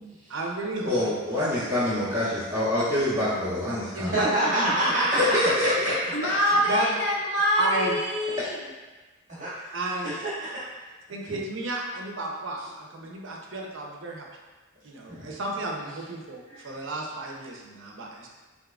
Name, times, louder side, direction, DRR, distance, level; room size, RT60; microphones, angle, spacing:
voice 1, 0.3-1.0 3.9-4.3 4.6-4.7 6.7-6.9 7.6-8.0 9.7-10.1 11.1-14.3 14.8-18.3, right 2 dB, 65° right, 0 dB, 0.6 m, -32 dB
voice 2, 0.8-4.2 5.3-5.9 6.2-6.3, left 1 dB, 15° right, -13 dB, 1.1 m, -26 dB
voice 3, 4.0-5.7 9.4-9.8 10.0-10.6 11.2-11.4 15.1-15.3 16.5-16.7, right 1 dB, 35° right, -10 dB, 1.2 m, -27 dB
voice 4, 6.1-8.7, left 1 dB, 55° left, -3 dB, 0.5 m, -25 dB
4.0 x 3.5 x 2.3 m, 1.2 s
head